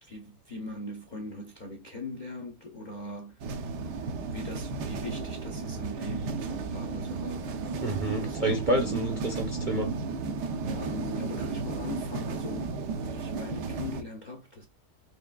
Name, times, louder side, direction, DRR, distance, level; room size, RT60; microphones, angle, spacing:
voice 1, 0.0-3.4 3.8-4.0 4.3-7.6 8.2-8.4 8.8-9.0 10.7-14.7, left 2 dB, 55° left, 0.4 m, -40 dB
sound 1, 3.4-14.0, right 4 dB, 85° right, 1.3 m, -34 dB
voice 2, 7.8-9.9, right 1 dB, 45° right, 0.6 m, -28 dB
4.8 x 3.2 x 2.2 m
omnidirectional pair, 1.7 m